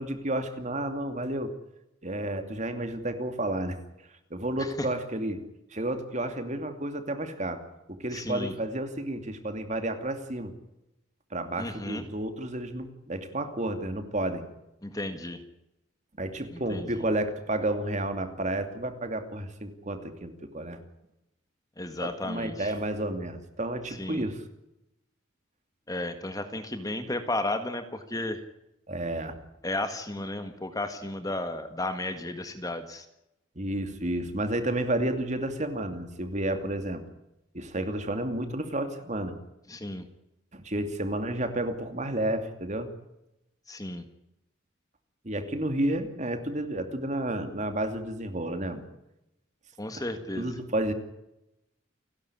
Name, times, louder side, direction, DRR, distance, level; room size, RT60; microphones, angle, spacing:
voice 1, 0.0-1.5 2.0-3.8 4.3-5.4 5.7-7.6 8.0-10.5 11.3-14.4 16.2-20.8 22.0-24.4 28.9-29.4 33.6-37.0 37.5-39.3 40.5-42.9 45.2-48.8 49.9-50.0 50.3-50.9, right 1 dB, 35° right, 8 dB, 2.6 m, -31 dB
voice 2, 8.1-8.5 11.6-12.0 14.8-15.4 16.5-17.0 21.8-22.7 23.9-24.2 25.9-28.4 29.6-33.1 39.7-40.1 43.7-44.0 49.8-50.5, left 2 dB, 20° left, 8 dB, 1.7 m, -34 dB
29.5 x 11.5 x 9.9 m, 0.90 s
head